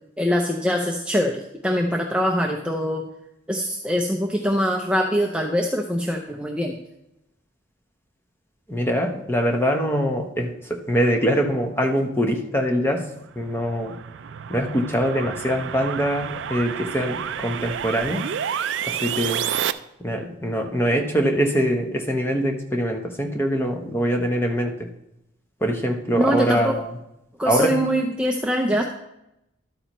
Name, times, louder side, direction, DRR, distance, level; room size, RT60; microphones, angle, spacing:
voice 1, 0.2-3.1 3.5-6.8 26.2-26.7 27.4-28.8, equal, 5° right, 1 dB, 0.5 m, -23 dB
voice 2, 8.7-10.5 10.9-13.1 13.4-13.9 14.5-18.2 18.9-19.4 20.0-24.7 25.6-26.9 27.4-27.8, equal, 10° left, 3 dB, 0.9 m, -23 dB
sound 1, 13.2-19.7, right 9 dB, 60° right, 0.3 m, -30 dB
12.0 x 8.7 x 3.0 m, 0.86 s
head